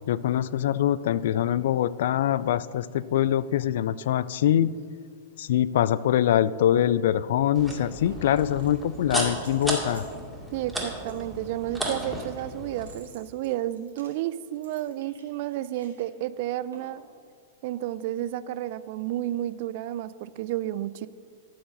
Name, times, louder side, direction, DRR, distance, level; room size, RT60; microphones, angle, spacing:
voice 1, 0.0-4.7 5.4-10.1, left 11 dB, 65° left, 19 dB, 0.3 m, -24 dB
sound 1, 7.0-7.1 8.1-10.2 11.0-16.1 16.7-17.1 18.7-18.8, right 4 dB, 85° right, 1.9 m, -53 dB
sound 2, 7.5-12.9, right 1 dB, ahead, 2.2 m, -34 dB
voice 2, 10.5-17.0 17.6-21.1, right 13 dB, 55° right, 16 dB, 0.3 m, -31 dB
12.5 x 4.7 x 6.4 m, 2.1 s
hypercardioid pair, 105°, 0 cm